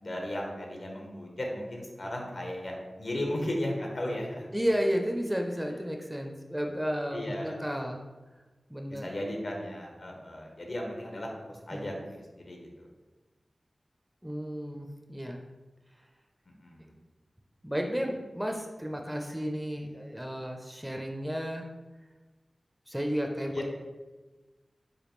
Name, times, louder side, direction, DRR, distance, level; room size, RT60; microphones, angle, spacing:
voice 1, 0.0-4.5 7.1-7.6 8.9-12.9 16.5-16.9 23.5-23.6, left 1 dB, 65° left, 0 dB, 0.8 m, -36 dB
voice 2, 4.5-8.0 8.7-9.1 11.7-11.8 14.2-15.4 17.6-21.7 22.9-23.7, equal, 10° right, 2 dB, 0.5 m, -32 dB
5.1 x 2.2 x 3.1 m, 1.2 s
cardioid pair, 45°, 0 cm